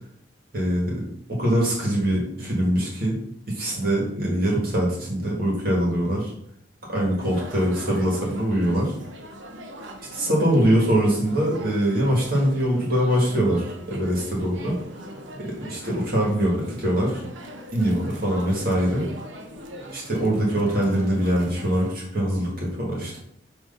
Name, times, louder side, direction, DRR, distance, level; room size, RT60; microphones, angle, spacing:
voice 1, 0.5-1.0 1.3-3.2 3.5-6.3 6.9-8.9 10.1-14.8 15.4-17.2 17.7-19.0 19.9-23.2, right 1 dB, 50° right, -4 dB, 1.8 m, -23 dB
sound 1, 7.2-21.9, equal, 80° right, 0.9 m, -41 dB
6.3 x 3.1 x 5.4 m, 0.70 s
head